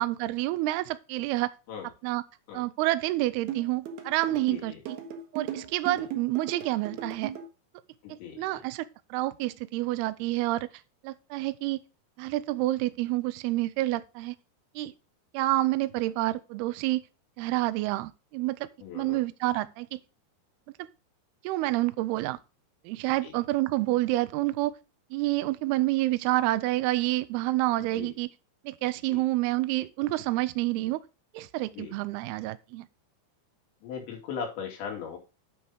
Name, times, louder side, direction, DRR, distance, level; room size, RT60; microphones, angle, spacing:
voice 1, 0.0-1.5 2.0-2.2 2.5-4.7 5.3-7.3 8.1-10.7 11.0-11.8 12.2-14.4 14.8-14.9 15.3-17.0 17.4-18.7 18.9-20.0 21.4-22.4 22.9-24.7 25.1-28.3 28.7-31.0 31.3-32.9, right 17 dB, 85° right, 2.3 m, -28 dB
sound 1, 3.5-7.5, right 8 dB, 70° right, 2.8 m, -36 dB
voice 2, 4.5-4.8 5.9-6.1 8.0-8.6 18.8-19.2 23.2-23.3 27.8-28.1 29.1-29.2 31.7-31.9 33.8-35.2, left 6 dB, 80° left, 4.8 m, -39 dB
9.1 x 5.6 x 4.8 m
omnidirectional pair, 5.1 m